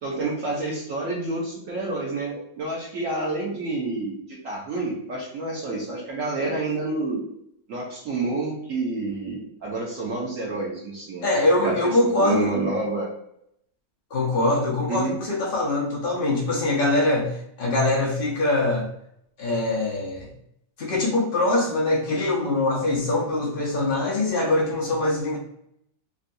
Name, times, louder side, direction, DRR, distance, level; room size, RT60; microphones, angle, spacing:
voice 1, 0.0-7.2 7.7-11.3 11.5-13.1 14.9-15.1, right 3 dB, 60° right, -3 dB, 0.9 m, -29 dB
voice 2, 11.2-12.5 14.1-18.9 19.4-20.3 20.8-25.4, left 2 dB, 70° left, -3 dB, 0.5 m, -23 dB
3.7 x 2.3 x 2.6 m, 0.74 s
omnidirectional pair, 2.1 m